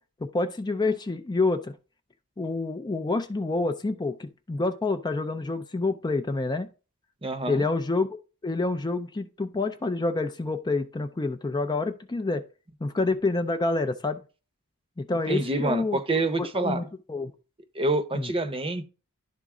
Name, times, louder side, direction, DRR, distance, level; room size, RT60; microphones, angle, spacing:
voice 1, 0.2-1.7 2.4-6.7 7.5-8.2 8.4-12.4 12.8-14.2 15.0-16.0 16.4-17.3 18.1-18.3, left 3 dB, 20° left, 0.4 m, -28 dB
voice 2, 7.2-7.6 15.3-16.8 17.7-18.9, right 2 dB, 25° right, 0.8 m, -27 dB
11.5 x 4.0 x 3.7 m
head